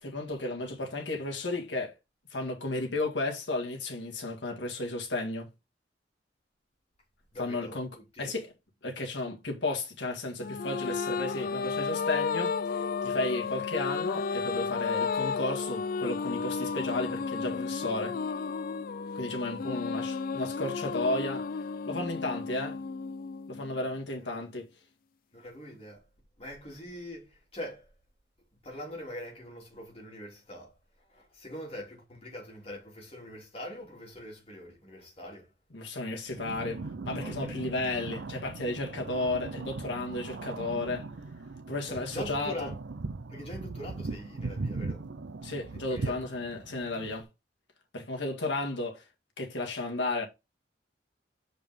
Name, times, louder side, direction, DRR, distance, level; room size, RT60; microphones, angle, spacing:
voice 1, 0.0-1.9 2.3-5.5 7.4-7.9 8.2-8.5 8.8-18.2 19.1-21.5 21.9-22.8 23.5-24.7 35.7-41.1 41.7-42.7 45.4-47.3 47.9-49.0 49.4-50.3, left 2 dB, 85° left, 1.8 m, -33 dB
voice 2, 7.3-8.3 24.2-24.4 25.3-26.0 26.4-27.9 28.6-30.8 31.1-35.5 37.2-37.5 41.9-42.8 43.3-45.0 45.7-46.2, left 1 dB, 35° left, 2.9 m, -43 dB
sound 1, 10.4-24.0, left 5 dB, 50° left, 0.4 m, -33 dB
sound 2, 36.3-47.2, right 3 dB, 75° right, 0.6 m, -39 dB
6.9 x 5.0 x 3.6 m
head